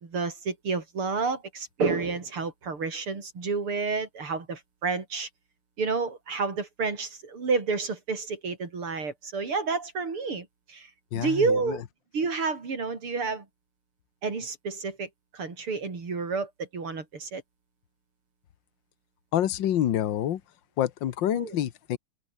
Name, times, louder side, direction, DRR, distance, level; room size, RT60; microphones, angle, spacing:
voice 1, 0.0-5.3 5.8-10.9 11.1-11.8 12.1-13.5 14.2-17.4 21.3-21.6, right 4 dB, 80° right, 5.0 m, -30 dB
voice 2, 11.1-11.8 19.3-20.4 20.8-22.0, left 11 dB, 60° left, 1.7 m, -27 dB
omnidirectional pair, 2.4 m